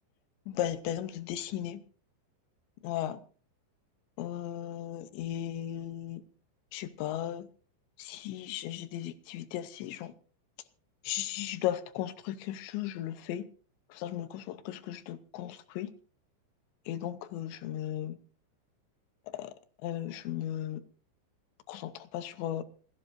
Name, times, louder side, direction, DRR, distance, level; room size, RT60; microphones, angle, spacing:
voice 1, 0.5-1.8 2.8-3.2 4.2-6.2 6.7-7.5 8.0-10.1 11.0-13.5 13.9-15.9 16.9-18.2 19.3-19.5 19.8-20.8 21.7-22.6, left 12 dB, 80° left, 3.0 m, -36 dB
27.0 x 12.5 x 2.6 m
omnidirectional pair, 5.4 m